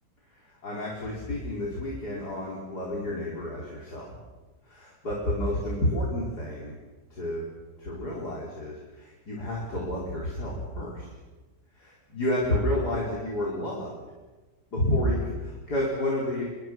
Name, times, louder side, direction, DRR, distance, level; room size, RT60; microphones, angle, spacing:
voice 1, 0.3-4.2 4.7-6.7 7.1-7.5 7.8-11.1 11.7-13.9 14.7-16.4, left 1 dB, 65° left, -4 dB, 5.5 m, -30 dB
28.0 x 23.5 x 6.3 m, 1.2 s
omnidirectional pair, 1.8 m